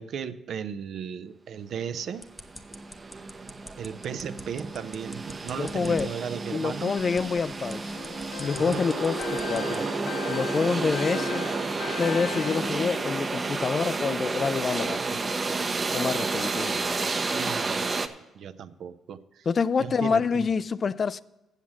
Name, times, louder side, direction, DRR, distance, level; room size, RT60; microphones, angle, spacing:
voice 1, 0.0-2.2 3.8-6.9 8.5-8.8 17.0-19.5 19.8-20.5, right 7 dB, 70° right, 0.5 m, -36 dB
sound 1, 2.1-2.2 2.5-18.1, right 3 dB, 30° right, 0.7 m, -31 dB
sound 2, 2.2-9.8 10.2-10.3 10.7-10.8 11.2-11.3 11.7-11.8 12.3-12.4 12.8-12.9 13.3-13.4 13.8-13.9 14.4-14.5 14.9-17.6, left 1 dB, 10° left, 1.0 m, -49 dB
voice 2, 5.6-6.1 6.5-8.0 8.4-9.9 10.3-11.5 12.0-15.2 15.9-17.0 19.5-21.2, left 5 dB, 40° left, 0.3 m, -27 dB
sound 3, 7.9-13.9, left 10 dB, 90° left, 0.6 m, -39 dB
8.2 x 7.3 x 7.3 m
cardioid pair, 90°, 0 cm